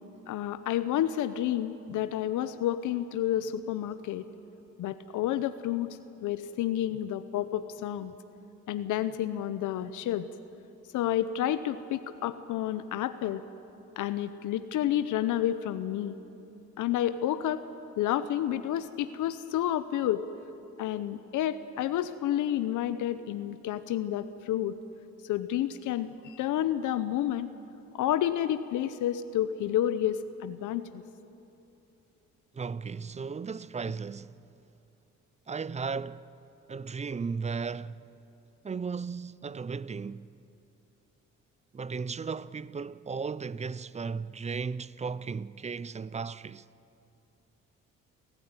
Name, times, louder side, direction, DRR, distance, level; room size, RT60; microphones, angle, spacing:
voice 1, 0.3-4.3 4.8-5.9 6.2-8.1 8.7-10.3 10.9-13.4 14.0-16.2 16.8-17.6 18.0-20.2 20.8-24.7 25.2-27.5 27.9-31.0, left 11 dB, 85° left, 0.8 m, -30 dB
voice 2, 32.5-34.4 35.5-36.3 36.7-38.0 38.6-40.3 41.7-46.7, right 5 dB, 25° right, 0.5 m, -35 dB
29.0 x 13.5 x 9.8 m
cardioid pair, 90°, 30 cm